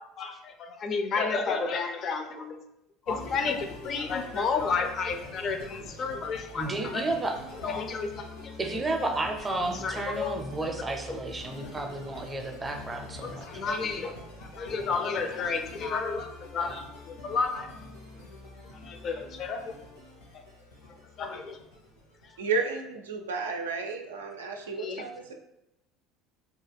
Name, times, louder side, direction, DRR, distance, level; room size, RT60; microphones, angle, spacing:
voice 1, 0.0-2.6 3.1-7.0 7.6-8.6 9.7-10.3 13.2-17.7 18.8-19.7 21.2-21.6 24.8-25.1, left 4 dB, 50° left, 6 dB, 0.4 m, -31 dB
sound 1, 3.1-22.4, left 2 dB, 80° left, 0.7 m, -45 dB
voice 2, 6.5-7.4 8.6-13.4 16.6-16.7, right 2 dB, 20° right, 3 dB, 0.5 m, -32 dB
voice 3, 22.4-25.3, right 4 dB, 85° right, 3 dB, 0.3 m, -32 dB
2.3 x 2.1 x 3.3 m, 0.86 s
hypercardioid pair, 70°, 0 cm